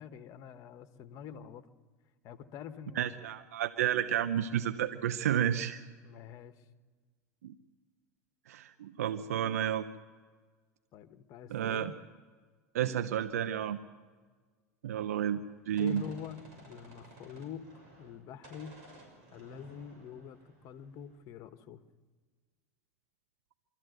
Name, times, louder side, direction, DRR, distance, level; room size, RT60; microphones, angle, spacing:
voice 1, 0.0-1.7 2.2-3.1 6.0-6.5 10.9-12.0 15.8-18.8 19.3-21.8, left 8 dB, 50° left, 11 dB, 1.3 m, -46 dB
voice 2, 3.0-5.8 7.4-7.5 8.5-9.9 11.5-11.9 12.7-13.8 14.8-16.0, right 10 dB, 80° right, 11 dB, 0.8 m, -31 dB
Gunshot gunfire, 15.3-18.2 18.4-21.2, right 2 dB, 60° right, 6.4 m, -55 dB
24.0 x 13.5 x 8.0 m, 1.5 s
hypercardioid pair, 90°, 8 cm